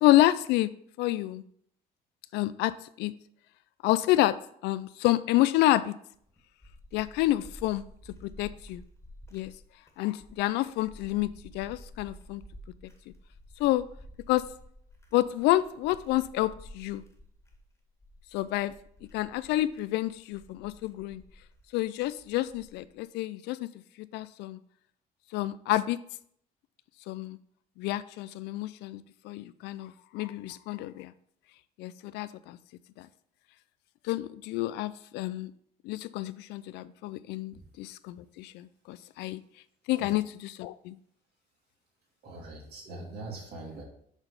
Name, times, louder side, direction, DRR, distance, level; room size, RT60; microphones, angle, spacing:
voice 1, 0.0-0.7 1.0-1.4 2.3-3.1 3.8-4.3 4.6-5.9 6.9-7.8 8.2-8.8 9.3-9.5 10.0-11.3 11.5-12.4 13.6-13.8 14.3-14.4 15.1-17.0 18.3-18.7 19.1-21.2 21.7-23.7 24.0-24.6 25.3-26.0 27.1-27.4 27.8-31.1 31.8-32.6 33.0-33.1 34.0-35.5 35.8-39.4 39.9-41.0, left 16 dB, 85° left, 15 dB, 0.4 m, -28 dB
sound 1, 6.1-23.0, equal, 15° left, 1.8 m, -52 dB
voice 2, 42.2-43.8, right 2 dB, 70° right, -2 dB, 2.8 m, -42 dB
7.1 x 4.0 x 6.6 m, 0.65 s
cardioid pair, 110°, 17 cm